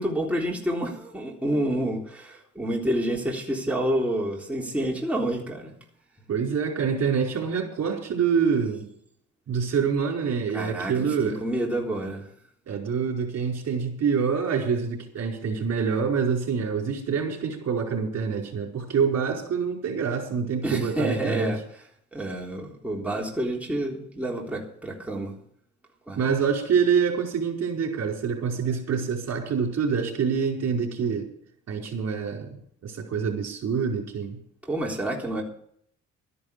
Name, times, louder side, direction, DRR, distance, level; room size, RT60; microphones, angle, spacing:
voice 1, 0.0-5.7 10.5-12.3 20.6-21.6 22.1-25.3 26.1-26.2 34.7-35.4, right 1 dB, 5° right, -2 dB, 3.7 m, -28 dB
voice 2, 6.3-8.9 9.5-11.4 12.7-21.5 26.2-31.3 31.7-32.6 32.8-34.4, right 6 dB, 55° right, 1 dB, 5.0 m, -26 dB
13.5 x 11.0 x 6.9 m, 0.65 s
cardioid pair, 90°, 30 cm